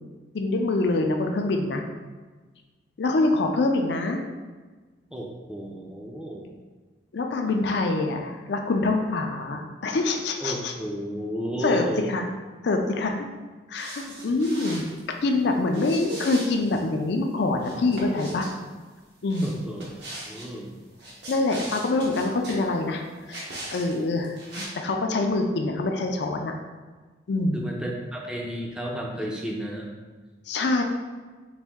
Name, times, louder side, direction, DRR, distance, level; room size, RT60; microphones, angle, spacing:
voice 1, 0.3-1.8 3.0-4.2 7.1-10.7 11.6-12.3 12.6-13.3 13.7-14.8 15.2-18.5 19.2-19.6 21.3-26.6 27.3-27.7 30.5-30.8, left 2 dB, 65° left, 3 dB, 0.4 m, -25 dB
voice 2, 5.1-6.5 10.4-12.2 19.4-19.9 20.3-20.8 27.5-29.9, equal, 5° right, -1 dB, 0.4 m, -33 dB
sound 1, 13.7-15.0 15.7-16.8 17.6-18.5 19.3-20.5 20.9-22.7 23.3-23.9 24.2-24.7, right 1 dB, 65° right, 1.0 m, -39 dB
4.1 x 2.6 x 3.5 m, 1.3 s
head